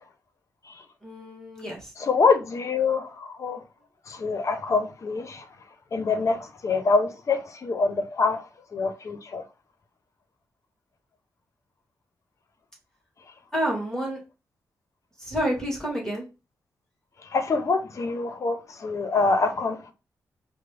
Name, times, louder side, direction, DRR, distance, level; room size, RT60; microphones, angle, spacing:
voice 1, 1.0-1.9 13.5-14.2 15.2-16.2, right 1 dB, 10° left, 1.3 m, -29 dB
voice 2, 2.1-3.6 4.1-5.4 5.9-8.4 8.7-9.4 17.3-19.9, left 4 dB, 50° left, 0.6 m, -25 dB
4.9 x 2.0 x 3.3 m
wide cardioid pair, 120°, 7 cm